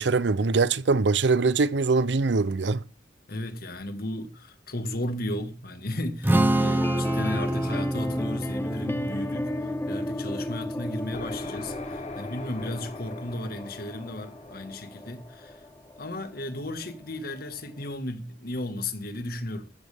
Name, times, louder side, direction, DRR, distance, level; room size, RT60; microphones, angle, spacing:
voice 1, 0.0-2.8, right 4 dB, 75° right, 0.6 m, -23 dB
voice 2, 3.3-15.6 16.0-19.6, left 1 dB, 60° left, 1.7 m, -35 dB
Strum, 6.2-12.5, right 1 dB, 10° right, 0.9 m, -28 dB
sound 1, 6.7-16.6 16.8-17.1 17.4-17.5 17.8-17.9, left 1 dB, 15° left, 0.6 m, -34 dB
sound 2, 11.1-16.7, left 3 dB, 40° left, 1.3 m, -43 dB
14.0 x 13.5 x 3.5 m
head